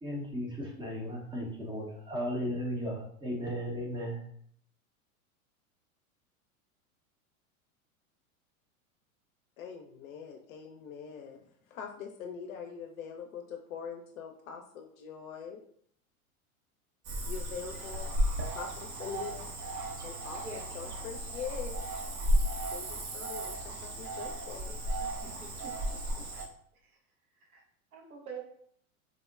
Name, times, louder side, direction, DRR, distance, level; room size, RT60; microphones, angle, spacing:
voice 1, 0.0-4.2, equal, 10° right, -1 dB, 0.5 m, -35 dB
voice 2, 9.6-11.4 11.7-15.6 17.3-18.1 18.5-19.5 20.0-21.8 22.7-24.8, left 7 dB, 70° left, 2 dB, 0.5 m, -43 dB
Cricket / Frog, 17.0-26.5, equal, 50° right, 0.8 m, -34 dB
voice 3, 20.4-21.0 25.2-26.3 27.5-27.6 27.9-28.4, right 5 dB, 80° right, -1 dB, 0.8 m, -46 dB
3.6 x 2.1 x 2.3 m, 0.63 s
hypercardioid pair, 95°, 43 cm